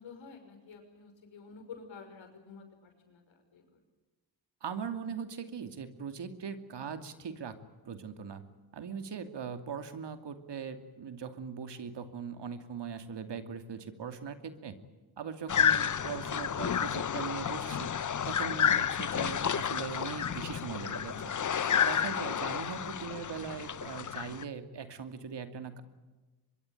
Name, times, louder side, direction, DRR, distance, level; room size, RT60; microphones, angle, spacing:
voice 1, 0.0-3.8, left 5 dB, 80° left, 5 dB, 6.0 m, -50 dB
voice 2, 4.6-7.6 7.9-8.4 8.7-14.8 15.2-17.9 18.3-21.3 21.7-25.8, right 6 dB, 65° right, 8 dB, 2.7 m, -40 dB
sound 1, 15.5-24.4, left 8 dB, 40° left, 0.9 m, -31 dB
24.5 x 22.5 x 9.2 m, 1.2 s
cardioid pair, 65°, 45 cm